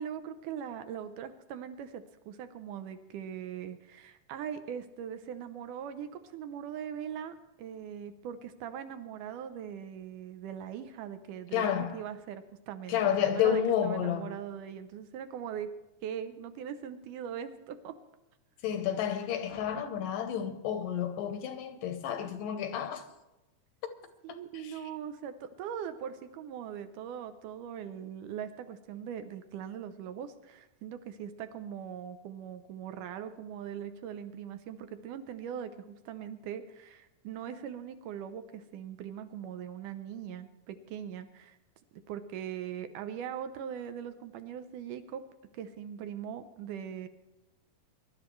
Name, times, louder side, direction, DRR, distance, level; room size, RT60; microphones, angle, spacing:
voice 1, 0.0-15.7 16.0-17.9 24.2-41.6 42.1-45.2 45.5-47.1, right 9 dB, 75° right, 1.9 m, -41 dB
voice 2, 11.5-12.0 12.9-14.3 18.6-23.0 24.3-24.8, left 9 dB, 75° left, 2.2 m, -30 dB
23.5 x 12.0 x 3.2 m
omnidirectional pair, 4.4 m